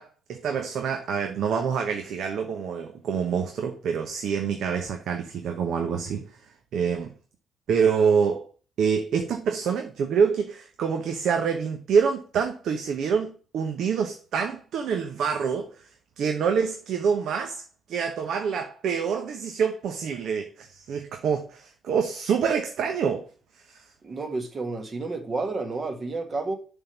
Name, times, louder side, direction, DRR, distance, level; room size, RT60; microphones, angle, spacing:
voice 1, 0.0-6.4 6.7-7.1 7.7-8.5 8.8-17.6 17.9-23.3 23.5-23.9, right 6 dB, 70° right, 0.9 m, -26 dB
voice 2, 24.0-26.6, right 3 dB, 40° right, 1.7 m, -30 dB
6.9 x 3.7 x 5.8 m
cardioid pair, 80°, 0 cm